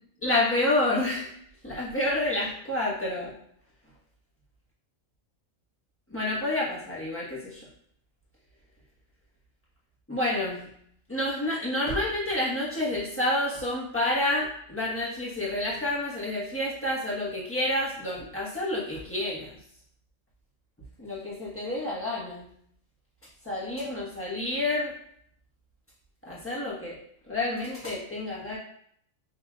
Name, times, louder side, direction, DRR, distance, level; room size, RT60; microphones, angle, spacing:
voice 1, 0.2-1.3 1.6-3.3 6.1-7.6 10.1-10.7 11.1-19.5 21.0-22.5 23.4-24.9 26.2-27.0 27.3-28.6, left 1 dB, 10° left, -6 dB, 1.1 m, -29 dB
5.6 x 3.0 x 2.4 m, 0.66 s
omnidirectional pair, 1.4 m